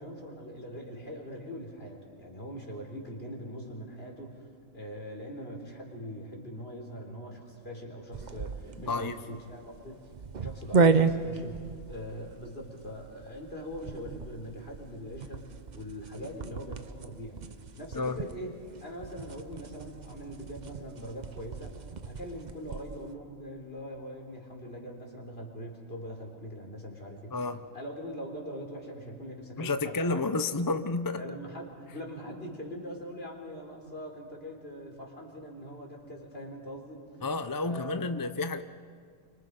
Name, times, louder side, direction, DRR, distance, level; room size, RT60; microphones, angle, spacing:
voice 1, 0.0-4.5 4.7-10.0 10.4-17.4 17.8-21.8 22.0-27.4 27.7-30.4 31.2-37.0 37.6-38.0, equal, 45° left, 1 dB, 4.1 m, -42 dB
sound 1, 8.1-23.0, right 4 dB, 40° right, 0.7 m, -33 dB
voice 2, 8.9-9.2 17.9-18.2 27.3-27.6 29.6-31.2 37.2-38.6, left 3 dB, 25° left, 9 dB, 0.4 m, -30 dB
29.5 x 25.0 x 5.3 m, 2.2 s
omnidirectional pair, 1.4 m